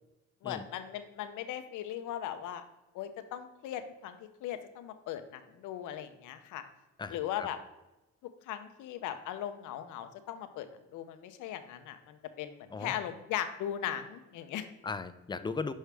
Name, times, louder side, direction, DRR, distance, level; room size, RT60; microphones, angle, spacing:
voice 1, 0.4-2.6 2.9-6.6 7.1-7.6 8.2-10.7 10.9-14.7, left 10 dB, 90° left, 9 dB, 0.7 m, -38 dB
voice 2, 7.0-7.5 12.7-13.0 14.8-15.7, left 4 dB, 15° left, 11 dB, 0.4 m, -37 dB
6.3 x 5.5 x 3.4 m, 1.0 s
cardioid pair, 90°, 30 cm